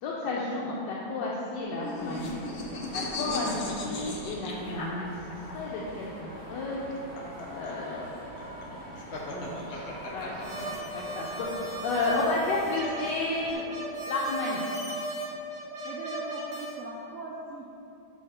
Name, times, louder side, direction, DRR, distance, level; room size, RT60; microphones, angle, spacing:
voice 1, 0.0-2.4 2.9-3.5 3.8-5.1 5.5-6.8 7.5-8.8 9.3-9.8 10.1-13.6 14.1-14.6, left 2 dB, 80° left, -4 dB, 1.3 m, -32 dB
sound 1, 1.5-5.5 6.8-11.0, left 2 dB, 55° left, 0.7 m, -36 dB
sound 2, 1.9-13.5, equal, 35° left, 1.8 m, -44 dB
sound 3, 10.4-16.8, right 1 dB, 45° right, 0.9 m, -37 dB
voice 2, 15.8-17.8, right 3 dB, 75° right, -3 dB, 0.7 m, -40 dB
7.0 x 3.2 x 4.2 m, 2.7 s
omnidirectional pair, 1.9 m